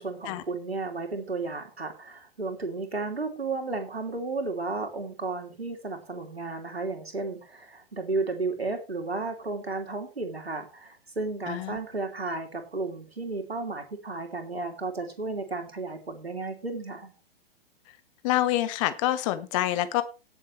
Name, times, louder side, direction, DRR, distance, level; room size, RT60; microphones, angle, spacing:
voice 1, 0.0-17.1, right 3 dB, 80° right, 4 dB, 3.1 m, -33 dB
voice 2, 11.5-11.8 18.2-20.0, left 14 dB, 30° left, 12 dB, 1.3 m, -26 dB
18.0 x 7.2 x 3.3 m, 0.30 s
figure-of-eight pair, 115°, 30 cm